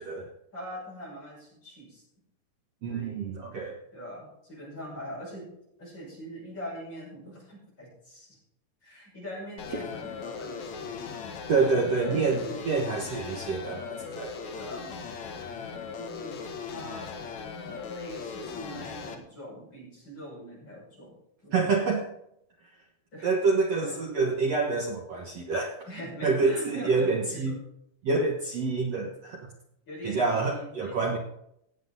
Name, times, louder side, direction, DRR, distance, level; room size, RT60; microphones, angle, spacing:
voice 1, 0.5-2.0 2.9-3.4 3.9-5.5 5.8-8.4 8.8-11.3 12.0-12.9 14.5-14.9 16.0-16.4 16.7-17.3 17.6-21.2 21.4-21.7 23.1-23.3 23.8-24.0 25.9-27.6 29.9-31.2, equal, 25° left, -5 dB, 6.8 m, -42 dB
voice 2, 2.8-3.8 11.5-14.4 21.5-22.1 23.2-25.9 26.2-27.6 28.0-29.4 30.0-31.2, right 4 dB, 65° right, 1 dB, 1.6 m, -27 dB
sound 1, 9.6-19.1, left 5 dB, 60° left, 2.1 m, -39 dB
17.5 x 8.0 x 4.0 m, 0.74 s
omnidirectional pair, 4.7 m